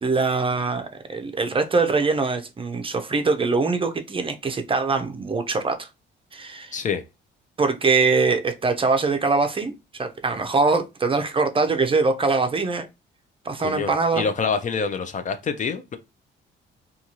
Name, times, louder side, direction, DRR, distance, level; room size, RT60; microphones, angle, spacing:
voice 1, 0.0-5.9 6.3-6.7 7.6-9.7 10.0-12.9 13.4-14.3, right 4 dB, 25° right, 0.5 m, -23 dB
voice 2, 6.7-7.0 13.6-16.0, left 5 dB, 40° left, 0.4 m, -26 dB
2.5 x 2.4 x 2.9 m
cardioid pair, 90°, 20 cm